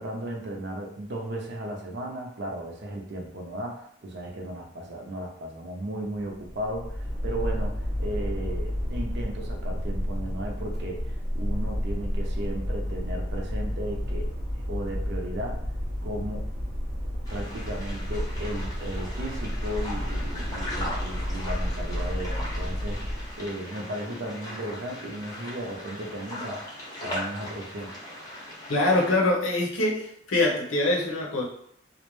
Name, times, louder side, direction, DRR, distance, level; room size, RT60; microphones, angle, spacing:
voice 1, 0.0-14.3 14.6-15.6 16.0-16.4 17.3-27.9, right 1 dB, 60° right, 1 dB, 0.6 m, -35 dB
sound 1, 6.3-23.4, equal, 80° right, 0.8 m, -31 dB
sound 2, 17.3-29.2, left 1 dB, 20° left, 0.6 m, -39 dB
voice 2, 28.7-31.5, left 2 dB, 80° left, -2 dB, 0.7 m, -24 dB
2.4 x 2.1 x 3.0 m, 0.70 s
head